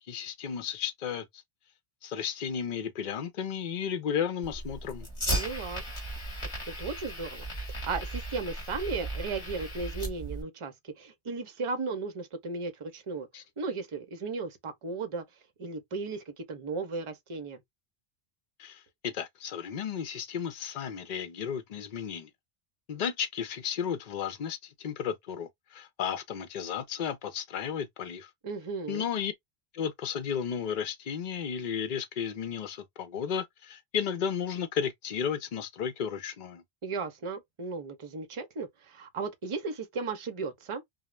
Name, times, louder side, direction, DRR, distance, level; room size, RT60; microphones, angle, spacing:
voice 1, 0.1-1.2 2.0-5.1 13.3-13.4 18.6-22.3 22.9-28.3 28.9-29.3 29.7-36.6, left 7 dB, 50° left, 0.7 m, -33 dB
Fire, 4.4-10.4, right 1 dB, 30° left, 1.3 m, -36 dB
voice 2, 5.3-5.8 6.7-13.3 13.6-15.2 15.6-17.6 28.4-29.0 36.8-40.8, right 4 dB, 35° right, 0.6 m, -36 dB
2.4 x 2.1 x 3.0 m
omnidirectional pair, 1.1 m